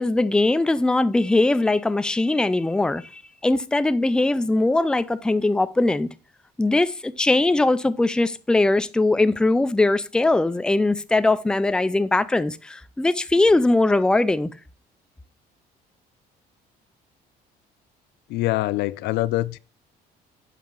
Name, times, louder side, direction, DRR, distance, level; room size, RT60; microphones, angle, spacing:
voice 1, 0.0-6.1 6.6-14.5, left 2 dB, 5° left, 0.4 m, -21 dB
voice 2, 18.3-19.6, left 17 dB, 80° left, 0.4 m, -24 dB
7.4 x 5.6 x 3.8 m
cardioid pair, 110°, 17 cm